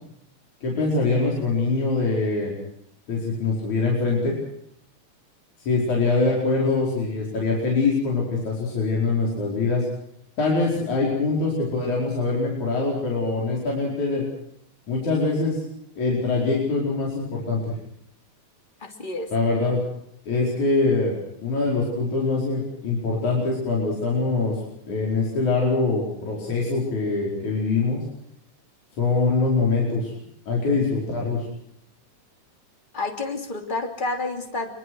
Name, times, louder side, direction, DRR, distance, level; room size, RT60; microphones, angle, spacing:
voice 1, 0.6-2.5 3.1-4.4 5.6-9.9 10.4-14.3 14.9-15.6 16.0-17.8 19.3-19.8 20.3-21.2 21.4-24.6 24.9-28.0 29.0-30.1 30.5-31.5, left 3 dB, 65° left, -3 dB, 6.3 m, -23 dB
voice 2, 18.8-19.3 32.9-34.7, left 2 dB, 15° left, 4 dB, 2.8 m, -29 dB
25.0 x 24.0 x 6.3 m, 0.71 s
omnidirectional pair, 3.6 m